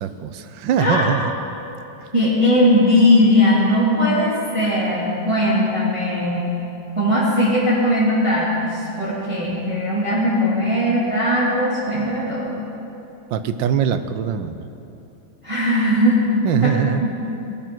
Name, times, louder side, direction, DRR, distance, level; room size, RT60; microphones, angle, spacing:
voice 1, 0.0-1.3 2.0-2.1 13.3-14.7 16.4-17.0, right 8 dB, 85° right, 10 dB, 1.5 m, -22 dB
voice 2, 2.1-6.5 6.9-12.6 15.4-16.2 17.0-17.1, left 1 dB, 15° right, -10 dB, 2.9 m, -19 dB
19.5 x 9.0 x 6.1 m, 2.8 s
omnidirectional pair, 2.0 m